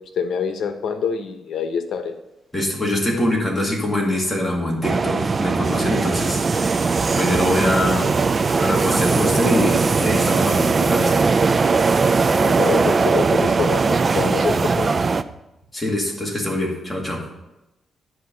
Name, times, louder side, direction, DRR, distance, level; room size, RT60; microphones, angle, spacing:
voice 1, 0.2-2.1 3.1-3.2 12.4-15.0, left 6 dB, 75° left, 7 dB, 1.0 m, -26 dB
voice 2, 2.5-6.4 7.2-8.1 8.6-11.2 15.7-17.2, left 1 dB, 10° left, -2 dB, 2.2 m, -23 dB
sound 1, 4.8-15.2, right 4 dB, 30° right, 0.3 m, -19 dB
10.0 x 4.7 x 6.8 m, 0.95 s
cardioid pair, 150°, 0 cm